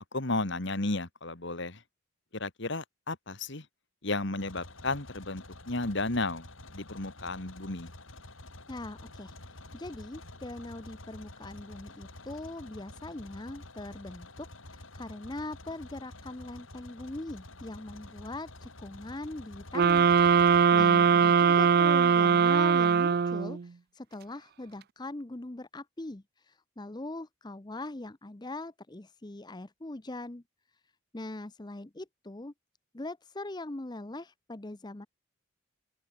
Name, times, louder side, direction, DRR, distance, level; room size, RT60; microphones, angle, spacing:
voice 1, 0.1-1.8 2.3-3.6 4.0-6.5 6.7-7.9 20.7-21.1, left 2 dB, 60° left, 2.2 m, -33 dB
sound 1, 4.4-20.6, left 2 dB, 75° left, 7.2 m, -49 dB
voice 2, 8.7-9.4 9.7-30.4 31.1-32.5 32.9-35.1, left 2 dB, 20° left, 0.7 m, -41 dB
sound 2, 19.7-23.6, right 6 dB, 50° right, 0.4 m, -21 dB
open air
head